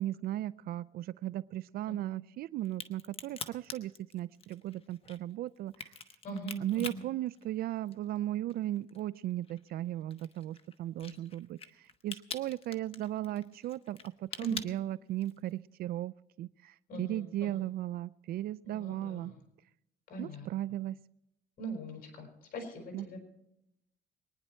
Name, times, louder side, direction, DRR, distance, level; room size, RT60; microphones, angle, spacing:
voice 1, 0.0-6.0 6.6-19.3 20.2-21.0 22.9-23.1, right 14 dB, 65° right, 18 dB, 0.4 m, -36 dB
Crack, 2.7-8.2 8.5-15.5, left 6 dB, 35° left, 1.1 m, -45 dB
voice 2, 6.2-7.0 11.0-11.2 14.3-14.6 16.9-17.6 18.6-19.4 20.1-20.5 21.6-23.2, right 2 dB, 60° left, 2 dB, 5.1 m, -42 dB
23.5 x 10.0 x 4.4 m, 0.85 s
cardioid pair, 110°, 17 cm